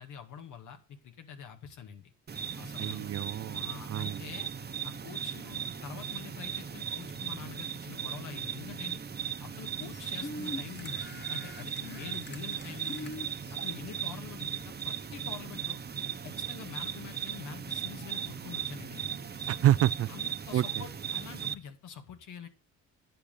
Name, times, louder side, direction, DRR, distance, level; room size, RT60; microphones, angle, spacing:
voice 1, 0.0-2.1 2.6-3.1 3.5-4.5 4.8-9.0 9.4-13.1 13.5-15.8 16.2-19.2 20.1-22.5, left 8 dB, 80° left, 2.0 m, -46 dB
sound 1, 2.3-21.5, right 7 dB, 35° right, 0.9 m, -38 dB
voice 2, 2.8-4.2 19.5-20.1 20.5-20.8, right 12 dB, 50° right, 0.4 m, -28 dB
sound 2, 9.6-15.6, left 2 dB, 35° left, 1.6 m, -44 dB
10.0 x 5.9 x 6.7 m
cardioid pair, 90°, 30 cm